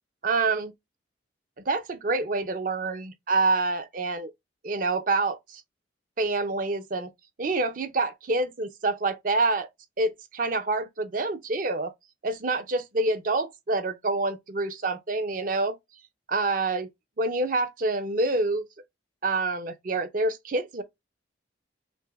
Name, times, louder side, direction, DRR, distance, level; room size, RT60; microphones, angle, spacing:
voice 1, 0.2-0.7 1.7-4.3 4.6-5.6 6.2-7.1 7.4-9.7 10.0-11.9 12.2-15.8 16.3-16.9 17.2-18.7 19.2-20.8, right 3 dB, 50° right, 0.6 m, -27 dB
6.0 x 2.0 x 3.4 m
head